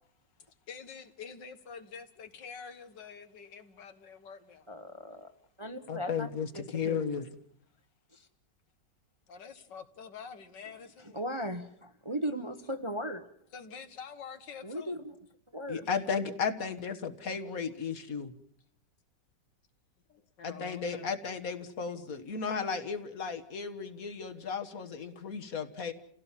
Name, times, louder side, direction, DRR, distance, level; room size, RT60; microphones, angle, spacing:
voice 1, 0.7-4.7 9.3-11.2 13.5-15.0 15.8-15.9 17.8-17.9 20.1-21.1, left 6 dB, 80° left, 9 dB, 2.2 m, -47 dB
voice 2, 4.7-5.3 5.6-6.3 6.5-7.2 8.1-8.3 11.1-13.2 14.6-15.0 15.5-15.8, equal, 20° right, 6 dB, 0.9 m, -37 dB
voice 3, 5.9-7.3 15.7-18.4 20.4-25.9, left 6 dB, 55° left, 9 dB, 1.9 m, -34 dB
29.5 x 16.5 x 7.4 m, 0.67 s
omnidirectional pair, 1.9 m